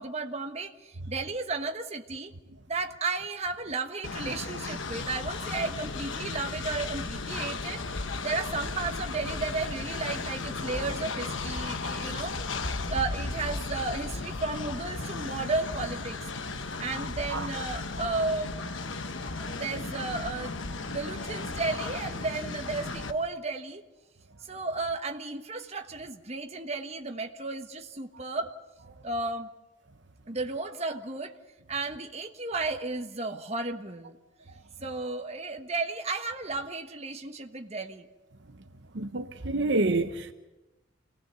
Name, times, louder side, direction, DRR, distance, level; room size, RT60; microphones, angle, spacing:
voice 1, 0.0-2.3 2.7-7.8 8.2-12.4 12.9-16.2 16.8-18.5 19.1-23.8 24.5-28.5 29.0-29.5 30.3-31.3 31.7-34.2 34.8-38.1, right 3 dB, 30° right, 1.3 m, -33 dB
Train, 4.0-23.1, left 3 dB, 70° left, 1.2 m, -35 dB
voice 2, 38.9-40.3, right 2 dB, 65° right, 0.9 m, -27 dB
26.5 x 18.5 x 6.9 m
head